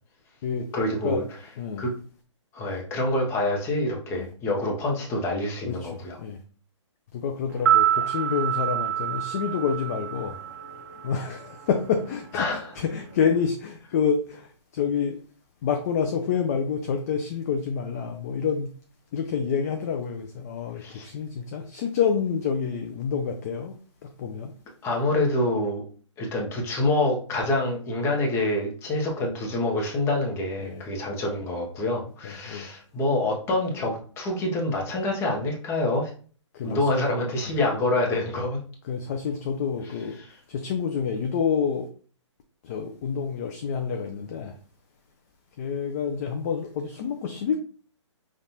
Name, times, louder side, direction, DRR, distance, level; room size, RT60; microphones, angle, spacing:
voice 1, 0.7-1.2 1.8-1.9 2.5-6.2 12.3-12.7 20.8-21.1 24.8-25.8 26.2-36.1 36.6-38.6 39.8-40.4, left 2 dB, 15° left, 0.8 m, -26 dB
voice 2, 5.7-6.4 7.2-10.4 11.0-15.2 15.6-18.7 19.1-23.7 24.2-24.5 30.6-30.8 32.5-32.7 36.5-37.0 38.9-40.2 40.5-41.9 42.6-44.5 45.6-47.6, left 6 dB, 30° left, 0.4 m, -28 dB
sound 1, 7.5-11.7 11.9-12.0, right 11 dB, 40° right, 0.7 m, -26 dB
5.3 x 2.4 x 2.8 m
hypercardioid pair, 150°, 16 cm